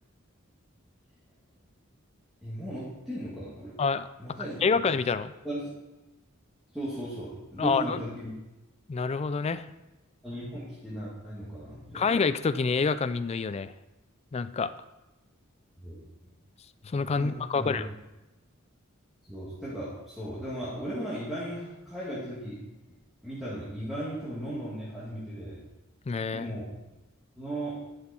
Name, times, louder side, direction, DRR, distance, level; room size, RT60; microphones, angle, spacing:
voice 1, 2.4-3.8 4.2-4.8 5.4-5.7 6.7-8.3 10.2-12.0 15.8-16.0 17.2-17.8 19.3-22.6 23.2-25.6 26.3-26.7 27.4-27.8, right 1 dB, ahead, -10 dB, 2.1 m, -36 dB
voice 2, 4.6-5.3 7.6-8.0 8.9-9.7 11.9-13.7 14.3-14.7 16.8-17.9 26.1-26.5, left 5 dB, 30° left, 13 dB, 0.3 m, -27 dB
11.0 x 6.1 x 4.3 m, 1.0 s
head